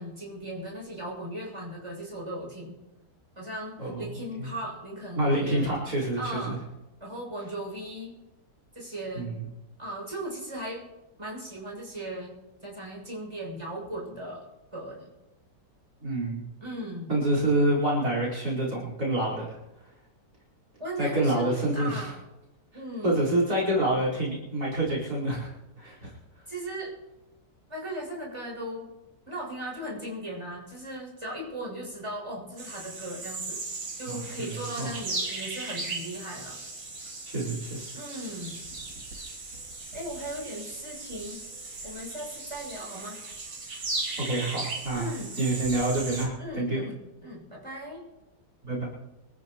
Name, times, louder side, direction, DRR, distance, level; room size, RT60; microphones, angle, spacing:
voice 1, 0.0-2.8 3.4-5.8 6.2-6.6 7.0-8.2 8.7-9.3 9.8-10.9 11.2-12.3 12.6-14.5 14.7-15.1 16.6-17.2 20.8-22.2 22.7-23.3 26.5-26.9 27.7-28.9 29.3-33.6 34.0-36.6 37.9-38.7 39.9-41.4 41.8-43.2 44.9-45.4 46.4-47.0 47.2-48.0, right 1 dB, 15° right, -3 dB, 7.1 m, -37 dB
voice 2, 3.8-4.5 5.2-6.6 9.2-9.4 16.0-16.4 17.1-19.6 21.0-22.1 22.7-25.5 25.8-26.1 34.1-34.9 37.3-37.9 44.2-45.1 45.3-46.8 48.6-48.9, right 1 dB, 55° right, -4 dB, 5.4 m, -27 dB
sound 1, 32.6-46.3, right 3 dB, 85° right, 3.7 m, -37 dB
25.5 x 14.0 x 3.1 m, 1.0 s
omnidirectional pair, 1.9 m